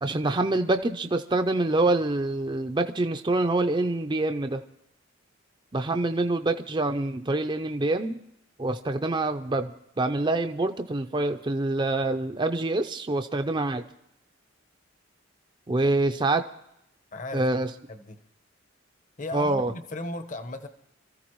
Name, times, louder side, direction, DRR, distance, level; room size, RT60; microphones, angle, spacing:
voice 1, 0.0-4.6 5.7-8.2 8.6-9.7 10.0-13.8 15.7-16.5 17.3-17.7 19.3-19.7, right 2 dB, 25° right, 7 dB, 0.5 m, -26 dB
voice 2, 17.1-17.5 17.9-18.2 19.2-20.7, left 2 dB, 40° left, 9 dB, 1.0 m, -36 dB
27.0 x 14.5 x 3.1 m, 0.81 s
head